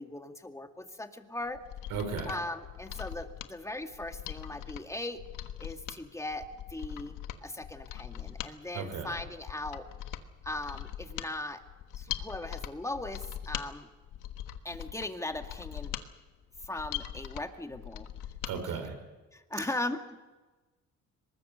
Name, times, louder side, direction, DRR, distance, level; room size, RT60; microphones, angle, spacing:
voice 1, 0.0-1.6 2.3-5.2 5.6-7.2 7.4-9.9 10.4-11.6 12.0-13.9 14.6-16.0 16.6-18.1 18.5-18.8 19.3-20.2, left 2 dB, 10° left, 5 dB, 2.1 m, -38 dB
Mechanisms, 1.5-18.6 18.9-19.0, left 11 dB, 90° left, 1.4 m, -41 dB
voice 2, 1.9-2.4 8.7-9.1 18.4-19.0, right 6 dB, 85° right, 7 dB, 4.9 m, -35 dB
23.5 x 20.5 x 6.6 m, 1.2 s
cardioid pair, 90°, 30 cm